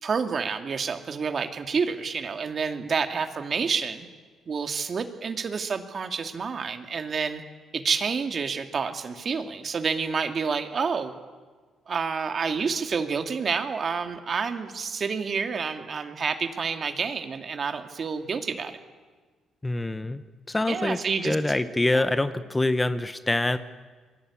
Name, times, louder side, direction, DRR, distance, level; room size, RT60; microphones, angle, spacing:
voice 1, 0.0-4.1 4.5-7.4 7.7-11.1 11.9-18.8 20.7-21.4 21.9-22.0, right 5 dB, 45° right, 7 dB, 2.4 m, -29 dB
voice 2, 19.6-20.2 20.5-21.0 21.2-23.6, left 2 dB, 15° left, 12 dB, 1.1 m, -25 dB
28.5 x 22.5 x 8.6 m, 1.4 s
cardioid pair, 90°, 0 cm